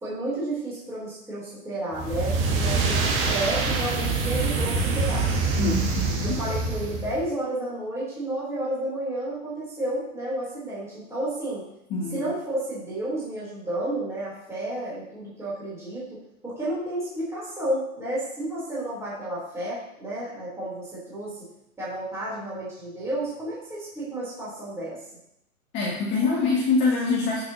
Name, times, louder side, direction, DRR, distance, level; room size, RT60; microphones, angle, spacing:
voice 1, 0.0-5.7 6.2-11.6 12.1-16.1 16.4-21.5 21.8-25.0, right 1 dB, 5° right, -9 dB, 3.6 m, -31 dB
sound 1, 1.9-7.2, right 3 dB, 25° right, 1.7 m, -25 dB
voice 2, 5.6-6.4 11.9-12.2 25.7-27.4, left 4 dB, 25° left, -5 dB, 1.9 m, -24 dB
14.5 x 6.7 x 2.9 m, 0.79 s
hypercardioid pair, 140°, 45 cm